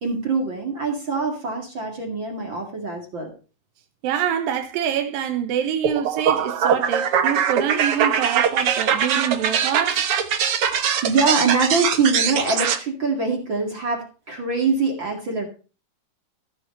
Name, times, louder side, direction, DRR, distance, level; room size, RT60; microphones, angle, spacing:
voice 1, 0.0-3.3 10.8-15.5, right 4 dB, 40° right, 2.4 m, -24 dB
voice 2, 4.0-10.1, right 9 dB, 85° right, 2.7 m, -25 dB
sound 1, 5.8-12.8, right 8 dB, 65° right, 1.4 m, -22 dB
15.0 x 5.9 x 5.3 m
omnidirectional pair, 3.9 m